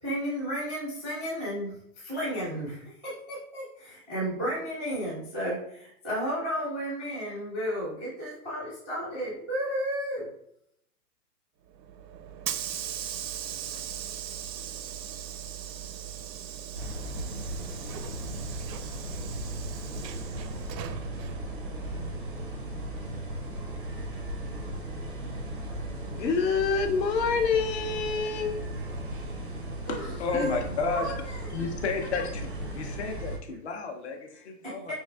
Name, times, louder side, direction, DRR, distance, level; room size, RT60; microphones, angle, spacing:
voice 1, 0.0-10.3 29.8-30.0 30.2-30.6 30.8-31.1 31.5-31.6 34.6-34.9, equal, 5° left, -13 dB, 0.6 m, -33 dB
Hiss / Sliding door, 11.7-22.6, right 9 dB, 80° right, 0.6 m, -39 dB
sound 1, 16.7-33.4, right 1 dB, 35° right, 0.5 m, -36 dB
voice 2, 26.1-28.5 30.3-30.5, left 5 dB, 80° left, 5 dB, 0.9 m, -26 dB
voice 3, 29.9-31.1 31.5-32.5 32.7-34.9, left 4 dB, 45° left, 4 dB, 0.6 m, -32 dB
5.3 x 3.3 x 2.3 m, 0.72 s
hypercardioid pair, 170°, 49 cm